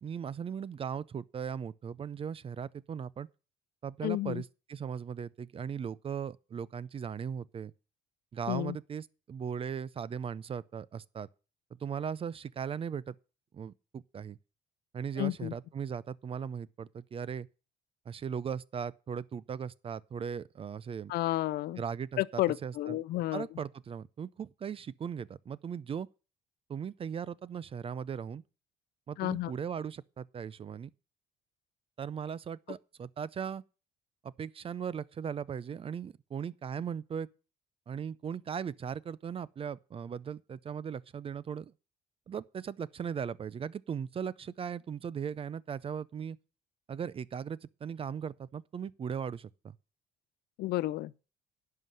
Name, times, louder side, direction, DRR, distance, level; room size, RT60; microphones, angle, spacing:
voice 1, 0.0-3.3 3.8-7.7 8.3-11.3 11.7-13.1 13.5-14.4 14.9-17.5 18.1-21.1 21.8-23.0 23.3-26.1 26.7-28.4 29.1-30.9 32.0-33.6 34.2-37.3 37.9-41.7 42.3-46.4 46.9-49.8, right 7 dB, 35° right, 0.5 m, -38 dB
voice 2, 4.0-4.4 8.5-8.8 15.2-15.5 21.1-21.8 22.2-23.5 29.2-29.5 50.6-51.1, left 16 dB, 70° left, 0.6 m, -31 dB
11.0 x 5.7 x 7.6 m
cardioid pair, 110°, 17 cm